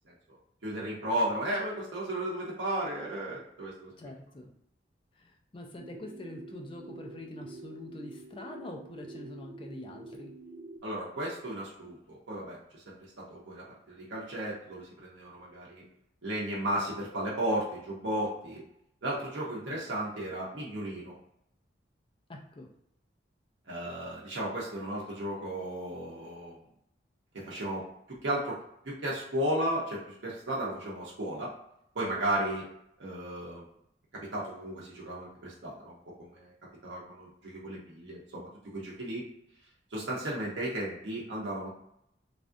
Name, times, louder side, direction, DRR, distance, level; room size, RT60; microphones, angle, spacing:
voice 1, 0.6-4.1 10.8-15.8 16.2-18.6 19.0-21.1 23.7-26.6 27.3-27.8 28.1-28.6 28.8-31.5 31.9-32.7 33.0-33.6 34.1-36.5 36.8-39.2 39.9-41.7, right 1 dB, 80° right, -5 dB, 0.8 m, -34 dB
voice 2, 4.0-4.5 5.2-10.3 19.7-19.8 22.3-22.7, left 1 dB, 30° left, 2 dB, 0.4 m, -45 dB
sound 1, 5.8-10.8, right 2 dB, 50° right, 0.4 m, -47 dB
3.4 x 2.5 x 2.5 m, 0.75 s
head